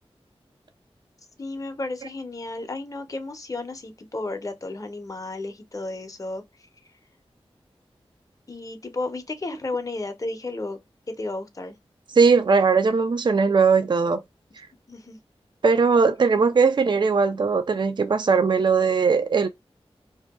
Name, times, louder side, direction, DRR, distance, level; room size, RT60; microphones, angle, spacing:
voice 1, 1.4-6.4 8.5-10.8 11.2-11.8 14.9-15.2, left 2 dB, 30° left, 0.6 m, -33 dB
voice 2, 12.1-14.2 15.6-19.5, right 5 dB, 45° right, 0.4 m, -19 dB
2.7 x 2.2 x 2.2 m
wide cardioid pair, 50°, 11 cm